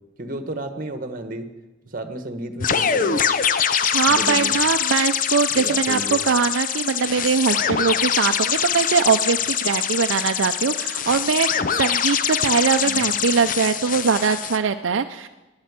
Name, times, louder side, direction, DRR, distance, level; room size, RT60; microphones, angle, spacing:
voice 1, 0.2-1.5 1.9-3.3 4.1-4.5 5.5-6.2 7.7-7.8 12.8-13.1, right 1 dB, 45° right, 9 dB, 1.2 m, -32 dB
sound 1, 2.6-14.6, left 8 dB, 45° left, 0.6 m, -23 dB
voice 2, 3.9-15.3, right 5 dB, 75° right, 7 dB, 0.5 m, -22 dB
12.0 x 10.5 x 8.1 m, 1.1 s
head